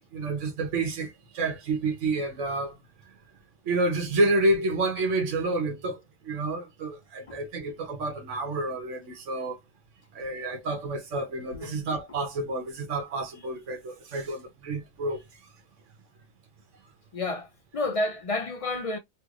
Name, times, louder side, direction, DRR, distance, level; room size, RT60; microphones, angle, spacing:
voice 1, 0.1-2.7 3.7-6.0 6.2-9.6 10.1-15.2, right 2 dB, 85° right, 1.3 m, -29 dB
voice 2, 17.1-19.0, left 2 dB, 55° left, 0.4 m, -31 dB
3.2 x 3.1 x 2.4 m
omnidirectional pair, 1.2 m